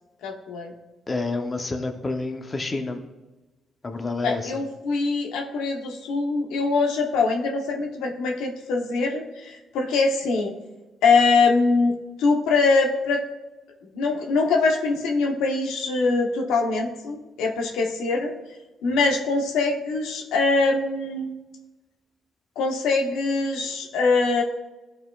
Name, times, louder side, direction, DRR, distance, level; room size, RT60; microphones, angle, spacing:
voice 1, 0.2-0.7 4.2-10.5 11.0-13.2 13.9-18.3 18.8-21.4 22.6-24.4, left 3 dB, 90° left, 2 dB, 0.8 m, -23 dB
voice 2, 1.1-3.0 3.8-4.5, left 3 dB, 25° left, 5 dB, 0.7 m, -28 dB
12.5 x 4.3 x 2.3 m, 1.1 s
cardioid pair, 90°, 0 cm